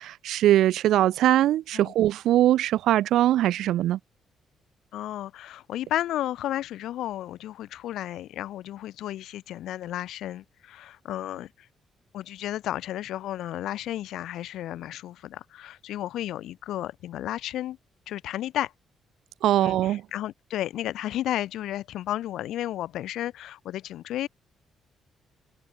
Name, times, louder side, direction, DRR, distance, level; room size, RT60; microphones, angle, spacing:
voice 1, 0.0-4.0 19.4-20.0, right 13 dB, 80° right, 0.5 m, -21 dB
voice 2, 4.9-11.7 12.1-17.8 18.1-18.7 19.6-24.3, left 13 dB, 80° left, 4.8 m, -33 dB
open air
cardioid pair, 90°, 0 cm